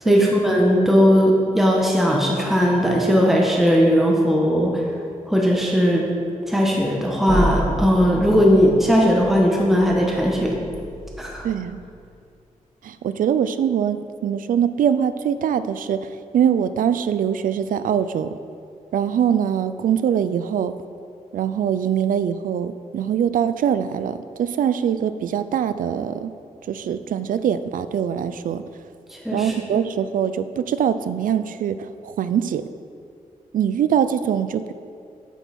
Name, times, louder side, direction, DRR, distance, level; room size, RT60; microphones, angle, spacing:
voice 1, 0.0-4.8 5.3-6.1 6.5-10.5 11.2-11.5 29.1-29.5, equal, ahead, -2 dB, 1.1 m, -18 dB
sound 1, 7.3-12.0, equal, 20° right, 1.4 m, -30 dB
voice 2, 11.4-11.8 12.8-18.4 18.9-20.7 21.3-26.3 26.7-28.6 29.3-32.6 33.5-34.7, right 8 dB, 75° right, 12 dB, 0.4 m, -23 dB
9.1 x 5.4 x 4.2 m, 2.4 s
cardioid pair, 85°, 14 cm